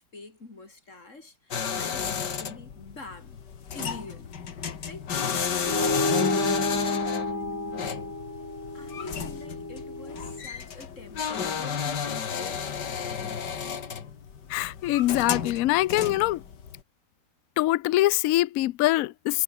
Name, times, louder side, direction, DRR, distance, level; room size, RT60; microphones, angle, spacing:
voice 1, 0.0-3.4 3.7-4.3 4.9-7.5 8.7-12.7, left 3 dB, 40° left, 4.2 m, -46 dB
sound 1, 1.5-16.8, left 7 dB, 65° left, 2.4 m, -32 dB
sound 2, 5.6-10.4, left 2 dB, 10° left, 1.3 m, -30 dB
voice 2, 14.5-16.4 17.6-19.4, left 16 dB, 85° left, 0.7 m, -24 dB
omnidirectional pair, 2.0 m